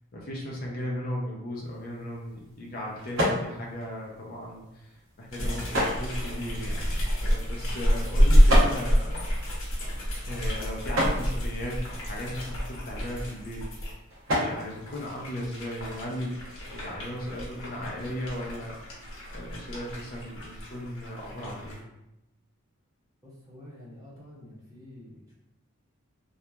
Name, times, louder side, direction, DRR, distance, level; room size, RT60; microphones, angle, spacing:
voice 1, 0.1-9.2 10.2-13.7 14.3-16.4 16.7-18.7 19.3-21.8, left 1 dB, 40° left, -3 dB, 0.5 m, -36 dB
sound 1, 1.5-15.9, equal, 65° right, 0.8 m, -34 dB
sound 2, 5.3-13.9 14.5-21.8, equal, 65° left, 0.9 m, -27 dB
voice 2, 23.2-25.3, left 1 dB, 15° right, -6 dB, 0.7 m, -48 dB
2.8 x 2.3 x 2.2 m, 0.87 s
head